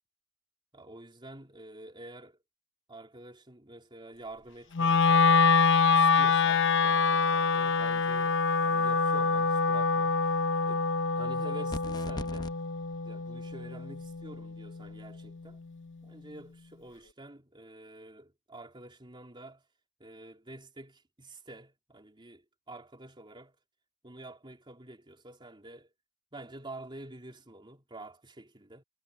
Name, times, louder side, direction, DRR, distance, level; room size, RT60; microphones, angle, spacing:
voice 1, 0.7-2.4 2.9-5.5 5.9-10.9 11.2-12.5 13.0-15.6 16.0-19.6 20.0-23.6 24.0-25.9 26.3-28.8, right 2 dB, 20° right, 3.5 m, -48 dB
Wind instrument woodwind instrument, 4.7-14.9, left 4 dB, 60° left, 0.9 m, -26 dB
sound 1, 11.7-12.5, left 1 dB, 20° left, 0.8 m, -38 dB
head